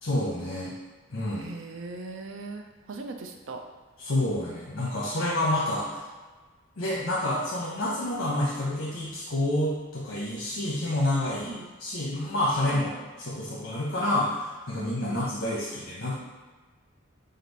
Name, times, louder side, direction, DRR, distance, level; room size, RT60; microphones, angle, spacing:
voice 1, 0.0-0.7 1.1-1.5 4.0-6.1 6.8-12.9 13.2-16.1, left 1 dB, 65° left, -5 dB, 0.8 m, -28 dB
voice 2, 1.3-3.6 11.5-11.7 14.7-15.2, right 3 dB, 70° right, 4 dB, 0.5 m, -40 dB
5.2 x 2.0 x 4.0 m, 1.3 s
head